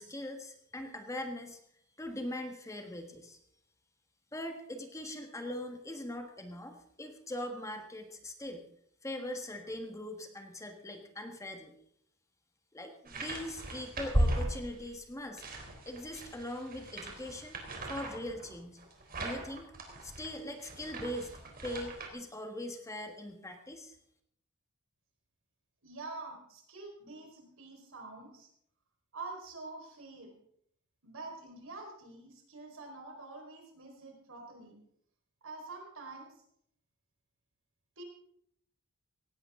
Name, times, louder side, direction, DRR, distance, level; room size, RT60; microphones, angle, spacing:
voice 1, 0.0-1.6 2.0-3.4 4.3-8.6 9.0-11.7 12.7-15.4 15.8-17.6 17.8-18.8 19.2-19.7 20.0-21.3 21.6-24.0, left 1 dB, 15° left, 5 dB, 1.5 m, -41 dB
sound 1, 13.1-15.0 15.4-22.1, right 1 dB, 45° right, 3.6 m, -37 dB
voice 2, 25.8-28.5 29.1-30.3 31.0-34.7 35.4-36.3 38.0-38.1, right 3 dB, 65° right, 2 dB, 4.7 m, -46 dB
18.0 x 16.0 x 3.8 m, 0.69 s
head